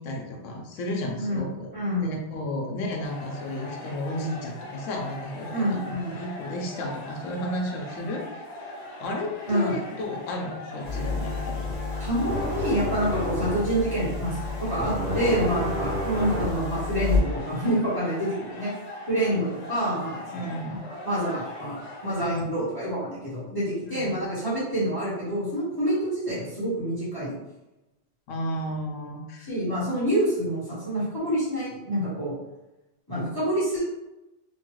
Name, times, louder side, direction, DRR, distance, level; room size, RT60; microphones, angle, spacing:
voice 1, 0.0-8.3 8.6-8.7 9.0-11.6 20.3-20.8 22.2-22.5 23.9-24.1 28.3-29.5, left 1 dB, 85° left, 1 dB, 1.0 m, -33 dB
voice 2, 1.7-2.1 5.5-6.2 9.5-9.7 12.0-18.7 19.1-20.6 20.8-27.3 29.5-32.4 33.1-33.8, right 1 dB, 20° left, -10 dB, 1.1 m, -27 dB
sound 1, 3.0-22.4, left 2 dB, 45° left, 0.5 m, -40 dB
sound 2, 10.8-17.2, left 2 dB, 40° right, 1.2 m, -29 dB
3.0 x 2.2 x 3.0 m, 0.96 s
omnidirectional pair, 1.3 m